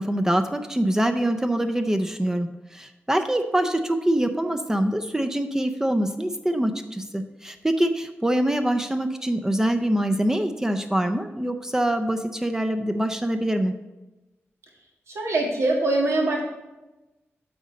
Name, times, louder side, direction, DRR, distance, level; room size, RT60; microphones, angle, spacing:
voice 1, 0.0-13.7, right 1 dB, 10° right, 6 dB, 0.4 m, -24 dB
voice 2, 15.1-16.4, right 2 dB, 85° right, -1 dB, 1.9 m, -23 dB
7.9 x 4.0 x 6.4 m, 1.1 s
wide cardioid pair, 140°, 5 cm